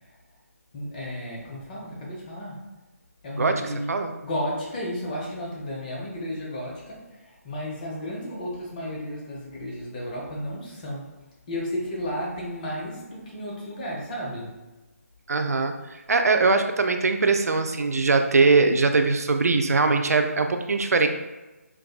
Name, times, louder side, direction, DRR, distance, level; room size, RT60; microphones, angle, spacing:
voice 1, 0.7-2.6 3.2-3.9 4.2-11.1 11.5-14.5, equal, 30° left, -4 dB, 0.8 m, -33 dB
voice 2, 15.3-21.1, right 3 dB, 75° right, 6 dB, 0.4 m, -21 dB
4.7 x 2.2 x 2.3 m, 1.1 s
figure-of-eight pair, 155°, 8 cm